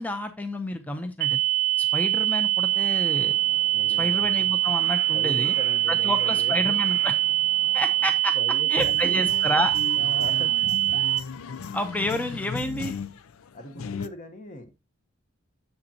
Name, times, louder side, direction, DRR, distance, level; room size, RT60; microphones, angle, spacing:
voice 1, 0.0-1.4 1.8-3.3 4.0-5.5 5.9-7.1 7.7-8.4 8.7-9.7 11.7-12.9, left 1 dB, 5° left, 0.6 m, -29 dB
sound 1, 1.2-11.2, right 13 dB, 65° right, 0.3 m, -23 dB
Crow, 2.7-8.2, right 2 dB, 15° right, 1.0 m, -47 dB
voice 2, 3.7-4.2 5.1-6.7 8.3-9.3 10.0-10.5 13.5-14.7, left 1 dB, 35° left, 1.0 m, -38 dB
sound 2, 8.8-14.1, left 5 dB, 75° left, 0.4 m, -36 dB
8.0 x 7.1 x 2.8 m
head